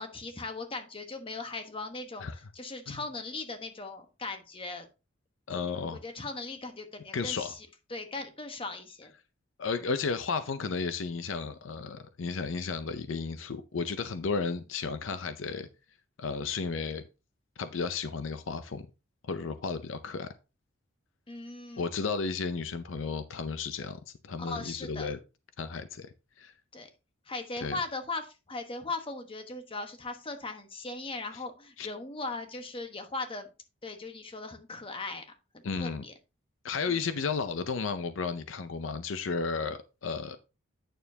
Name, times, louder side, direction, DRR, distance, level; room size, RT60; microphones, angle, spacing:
voice 1, 0.0-4.9 5.5-5.6 5.9-9.1 21.3-21.8 24.4-25.1 26.7-26.9 27.3-33.5 33.8-35.2 35.5-36.1, left 3 dB, 25° left, 1.1 m, -39 dB
voice 2, 5.5-6.0 7.1-7.5 9.6-15.7 16.2-17.0 17.6-18.9 19.3-20.3 21.8-25.2 25.6-26.1 26.4-26.5 27.6-27.8 31.8-31.9 35.6-36.0 36.6-40.4, left 4 dB, 70° left, 0.5 m, -33 dB
9.0 x 6.7 x 2.8 m
head